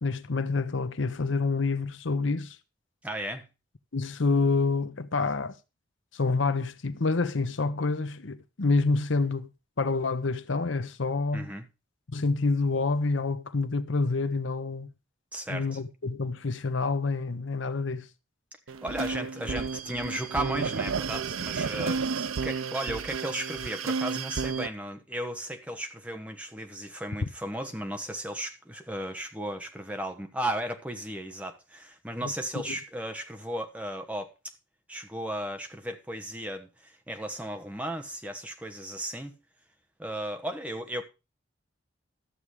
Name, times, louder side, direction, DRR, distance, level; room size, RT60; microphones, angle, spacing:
voice 1, 0.0-2.6 3.9-5.5 6.1-9.5 9.8-11.5 12.1-14.9 15.5-18.1 32.7-32.8, left 3 dB, 70° left, 0.8 m, -27 dB
voice 2, 3.0-3.5 11.3-11.7 15.3-15.8 18.7-34.3 34.9-39.3 40.0-41.0, right 1 dB, 5° right, 1.2 m, -35 dB
sound 1, 18.7-24.7, right 5 dB, 85° right, 0.6 m, -32 dB
13.0 x 7.3 x 4.8 m
head